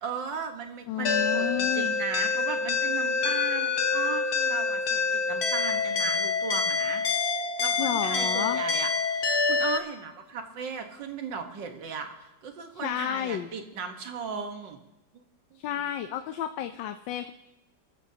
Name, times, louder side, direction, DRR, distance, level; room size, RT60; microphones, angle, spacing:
voice 1, 0.0-7.0 7.6-14.8 15.5-15.6, right 6 dB, 80° right, 5 dB, 2.1 m, -36 dB
voice 2, 0.9-1.9 7.8-8.6 12.8-13.5 15.6-17.3, left 11 dB, 90° left, 8 dB, 1.4 m, -31 dB
sound 1, 1.0-9.8, left 4 dB, 60° left, 1.5 m, -26 dB
26.0 x 14.5 x 2.8 m, 0.98 s
omnidirectional pair, 1.9 m